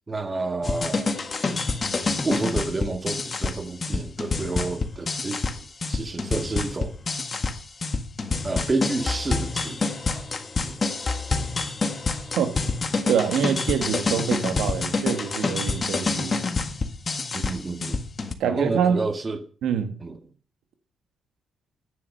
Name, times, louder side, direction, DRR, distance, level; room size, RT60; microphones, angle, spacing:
voice 1, 0.1-1.1 2.2-7.0 8.4-10.3 10.6-10.8 17.3-18.1 18.5-19.4 20.0-20.2, right 3 dB, 25° right, 1.8 m, -30 dB
sound 1, 0.6-18.3, left 3 dB, 30° left, 1.6 m, -27 dB
voice 2, 13.1-16.4 18.4-19.0 19.6-20.0, right 7 dB, 80° right, 1.6 m, -25 dB
9.9 x 9.8 x 6.6 m
cardioid pair, 90°, 0 cm